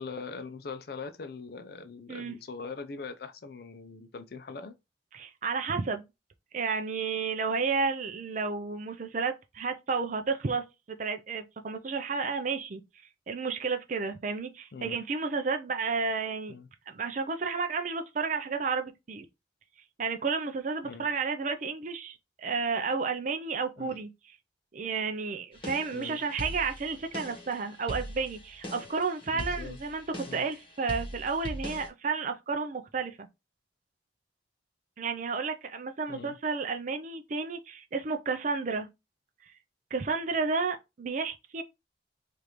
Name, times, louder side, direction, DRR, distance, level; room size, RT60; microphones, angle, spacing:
voice 1, 0.0-4.8 14.7-15.0 16.5-16.7 20.8-21.1 23.8-24.0 25.9-26.2 29.3-29.8 30.3-30.4 36.1-36.3, left 4 dB, 55° left, 0.5 m, -41 dB
voice 2, 5.1-6.0 6.5-12.8 13.3-16.6 16.9-19.2 20.0-24.4 24.7-30.0 30.3-33.3 35.0-38.9 39.4-39.5 39.9-41.6, right 4 dB, 45° right, 0.4 m, -32 dB
sound 1, 25.5-31.9, equal, 30° left, 1.1 m, -41 dB
4.9 x 2.5 x 2.9 m
head